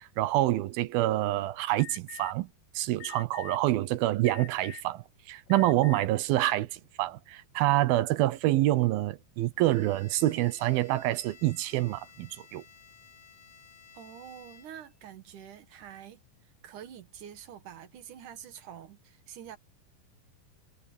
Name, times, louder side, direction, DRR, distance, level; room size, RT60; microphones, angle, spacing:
voice 1, 0.0-2.5 2.7-12.6, right 16 dB, 80° right, 2.7 m, -27 dB
Alarm, 1.8-2.3 3.0-3.6 4.3-4.9 5.5-6.1, left 13 dB, 75° left, 1.7 m, -44 dB
Bowed string instrument, 9.6-15.0, left 5 dB, 35° left, 3.8 m, -55 dB
voice 2, 13.9-19.6, right 9 dB, 60° right, 2.8 m, -47 dB
omnidirectional pair, 4.3 m